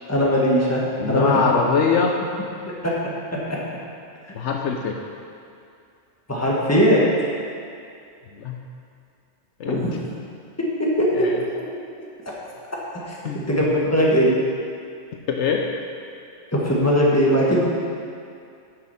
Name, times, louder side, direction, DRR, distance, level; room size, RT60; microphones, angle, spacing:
voice 1, 0.1-1.4 2.8-2.9 3.3-3.6 6.3-7.0 9.7-9.9 10.8-11.3 13.1-13.2 13.5-14.3 16.5-17.7, equal, 10° left, -5 dB, 1.5 m, -19 dB
voice 2, 1.0-2.1 4.3-4.9 8.4-8.6 9.6-9.9 11.1-11.4 13.2-13.7 15.3-15.7, left 6 dB, 70° left, 1 dB, 1.0 m, -22 dB
8.9 x 6.3 x 5.7 m, 2.4 s
omnidirectional pair, 1.3 m